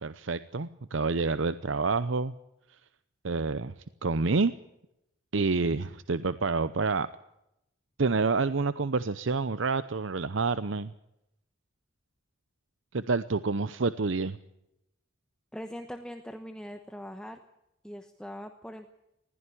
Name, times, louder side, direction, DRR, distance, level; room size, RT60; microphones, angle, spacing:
voice 1, 0.0-2.3 3.2-3.7 4.0-4.5 5.3-7.1 8.0-10.9 12.9-14.4, right 4 dB, 75° right, 14 dB, 0.7 m, -28 dB
voice 2, 15.5-17.4 17.8-18.9, equal, 5° left, 6 dB, 1.0 m, -41 dB
20.5 x 16.0 x 9.9 m, 0.85 s
head